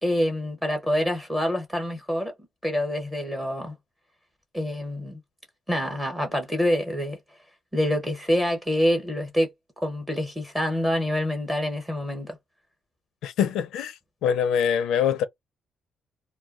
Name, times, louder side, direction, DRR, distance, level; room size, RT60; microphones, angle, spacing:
voice 1, 0.0-2.3 2.6-3.7 4.5-5.2 5.7-7.2 7.7-9.5 9.8-12.4, equal, 10° right, 0.8 m, -26 dB
voice 2, 13.2-15.3, left 8 dB, 85° left, 0.5 m, -24 dB
2.2 x 2.2 x 3.5 m
cardioid pair, 120°, 0 cm